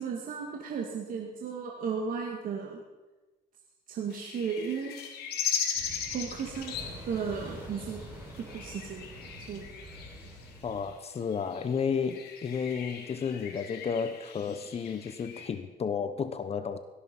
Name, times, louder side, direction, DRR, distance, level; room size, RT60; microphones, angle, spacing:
voice 1, 0.0-2.8 3.9-5.0 6.1-6.8 7.0-8.0 8.4-9.1 9.5-9.7, right 6 dB, 55° right, 0 dB, 2.3 m, -34 dB
sound 1, 4.1-15.5, left 8 dB, 70° left, 2.7 m, -39 dB
sound 2, 5.7-10.8, equal, 15° right, 5.5 m, -46 dB
voice 2, 10.6-16.8, left 6 dB, 35° left, 11 dB, 1.1 m, -32 dB
18.0 x 13.5 x 5.5 m, 1.2 s
cardioid pair, 110°, 17 cm